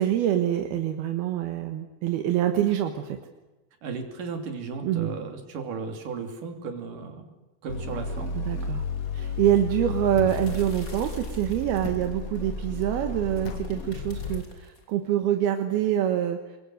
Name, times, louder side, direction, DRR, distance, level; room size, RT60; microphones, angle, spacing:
voice 1, 0.0-3.2 4.8-5.1 8.3-8.8 9.1-16.4, right 11 dB, 80° right, 6 dB, 3.2 m, -25 dB
voice 2, 3.8-7.3 7.6-8.4, right 4 dB, 55° right, 5 dB, 4.4 m, -35 dB
sound 1, 7.7-14.4, left 4 dB, 40° left, 1.3 m, -33 dB
sound 2, 10.2-10.5 11.8-12.1 13.4-13.8, left 5 dB, 55° left, 3.1 m, -37 dB
sound 3, 10.3-12.4 13.2-14.9, left 2 dB, 20° left, 3.9 m, -50 dB
26.0 x 22.0 x 7.9 m, 1.1 s
omnidirectional pair, 4.5 m